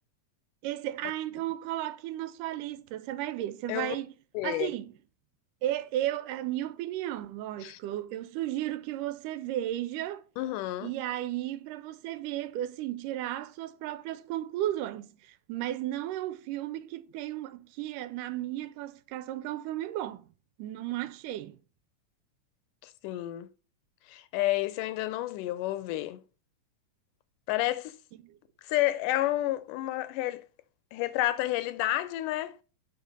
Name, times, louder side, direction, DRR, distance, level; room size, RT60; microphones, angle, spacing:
voice 1, 0.6-4.1 4.4-4.9 5.6-10.2 10.8-20.3 20.6-21.6 28.2-28.4, right 13 dB, 85° right, 2.2 m, -34 dB
voice 2, 4.3-4.7 7.6-7.8 10.4-10.9 22.8-23.5 24.1-26.2 27.5-28.0 28.6-30.5 30.9-32.6, left 15 dB, 80° left, 2.1 m, -30 dB
6.6 x 6.3 x 5.0 m
omnidirectional pair, 3.7 m